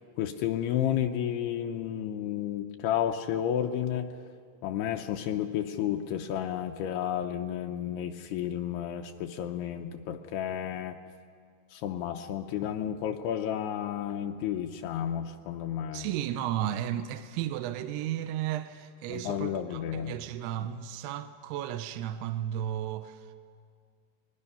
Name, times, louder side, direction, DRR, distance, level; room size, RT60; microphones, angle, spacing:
voice 1, 0.2-4.1 4.6-11.0 11.7-16.1 19.1-20.2, left 10 dB, 80° left, 2.7 m, -32 dB
voice 2, 15.9-23.4, right 11 dB, 80° right, 2.7 m, -34 dB
29.5 x 21.0 x 5.6 m
omnidirectional pair, 4.8 m